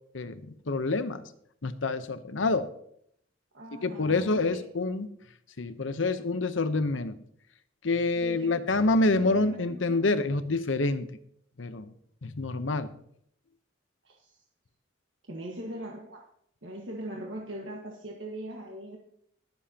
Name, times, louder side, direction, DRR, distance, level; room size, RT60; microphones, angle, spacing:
voice 1, 0.1-1.2 1.6-2.7 3.8-5.1 5.6-7.2 7.8-11.1 11.6-11.9 12.2-12.9, left 2 dB, 85° left, 11 dB, 0.8 m, -27 dB
voice 2, 3.5-4.6 8.1-8.8 9.1-10.0 14.0-14.4 15.3-16.2 16.6-19.0, right 1 dB, 75° right, -1 dB, 1.6 m, -41 dB
21.5 x 7.2 x 2.9 m, 0.69 s
head